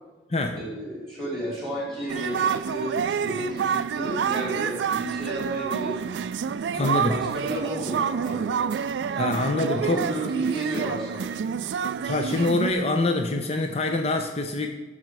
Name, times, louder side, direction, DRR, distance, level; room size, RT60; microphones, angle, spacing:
voice 1, 0.5-6.0 6.8-8.8 9.1-11.4, right 1 dB, ahead, -5 dB, 2.8 m, -33 dB
sound 1, 1.8-3.5, left 1 dB, 80° left, 2.8 m, -48 dB
sound 2, 2.1-12.7, right 7 dB, 75° right, 0.3 m, -28 dB
voice 2, 6.7-7.2 9.2-10.1 12.0-14.7, left 2 dB, 35° left, 5 dB, 0.7 m, -25 dB
12.5 x 5.6 x 4.7 m, 1.2 s
head